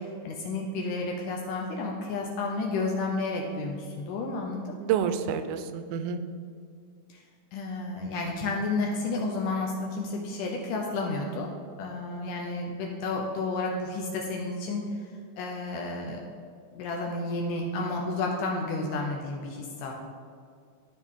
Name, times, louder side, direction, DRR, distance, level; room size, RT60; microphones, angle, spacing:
voice 1, 0.2-4.8 7.1-7.2 7.5-11.5 11.8-14.8 15.4-16.2 16.7-19.9, left 3 dB, 75° left, 0 dB, 2.0 m, -31 dB
voice 2, 4.8-6.2, right 8 dB, 85° right, 10 dB, 2.4 m, -28 dB
13.0 x 4.6 x 3.6 m, 2.2 s
omnidirectional pair, 4.3 m